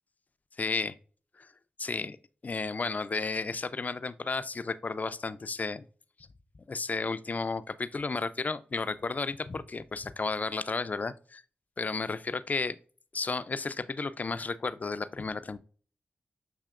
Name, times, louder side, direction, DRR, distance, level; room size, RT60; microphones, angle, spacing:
voice 1, 0.6-0.9 1.4-1.5 1.8-2.2 2.4-5.8 6.7-11.4 11.8-12.8 13.1-15.6, left 4 dB, 40° left, 0.4 m, -33 dB
6.7 x 2.8 x 2.4 m
cardioid pair, 45°, 4 cm